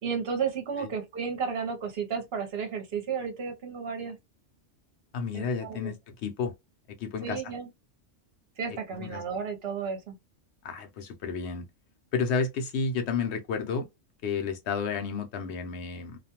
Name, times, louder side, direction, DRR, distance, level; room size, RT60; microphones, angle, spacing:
voice 1, 0.0-4.2 5.3-5.9 7.2-7.7 8.6-10.2, right 6 dB, 60° right, 0.9 m, -33 dB
voice 2, 5.1-6.0 6.2-6.5 6.9-7.4 9.0-9.2 10.6-11.6 12.1-13.9 14.2-16.2, left 5 dB, 70° left, 0.8 m, -31 dB
2.4 x 2.2 x 2.8 m
omnidirectional pair, 1.2 m